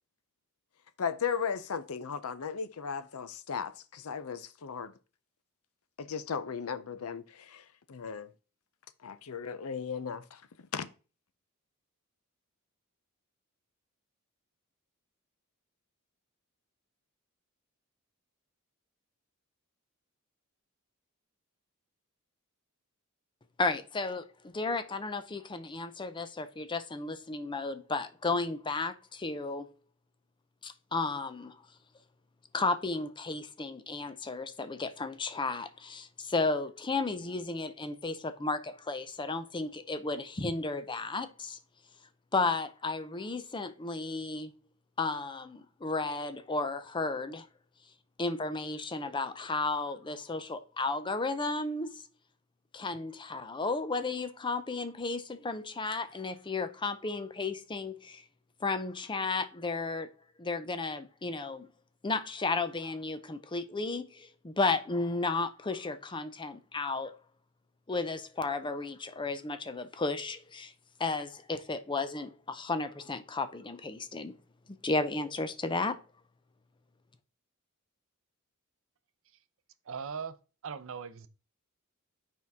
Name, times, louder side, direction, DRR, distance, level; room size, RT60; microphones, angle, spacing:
voice 1, 1.0-4.9 6.0-7.6 7.9-8.3 9.0-10.4 10.7-10.9, left 6 dB, 75° left, 0.6 m, -36 dB
voice 2, 23.6-29.7 30.6-31.6 32.5-41.6 42.3-44.5 45.0-47.5 48.2-52.0 52.7-58.2 58.6-60.1 60.4-61.7 62.0-67.1 67.9-70.7 71.0-74.3 74.8-76.0, left 3 dB, 20° left, 0.6 m, -33 dB
voice 3, 79.9-80.4 80.6-81.3, right 6 dB, 65° right, 0.6 m, -39 dB
8.1 x 4.5 x 3.5 m
head